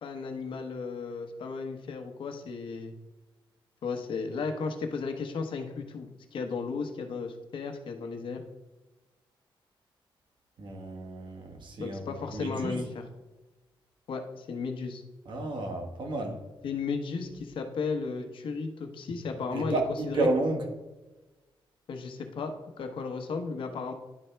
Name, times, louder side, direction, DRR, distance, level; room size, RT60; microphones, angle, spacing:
voice 1, 0.0-2.9 3.8-8.4 11.8-13.0 14.1-15.0 16.6-19.8 20.1-20.3 21.9-23.9, left 4 dB, 65° left, 5 dB, 1.0 m, -34 dB
voice 2, 10.6-12.8 15.2-16.4 19.5-20.6, right 2 dB, 60° right, 3 dB, 1.3 m, -32 dB
10.5 x 4.3 x 3.3 m, 1.1 s
wide cardioid pair, 145°, 9 cm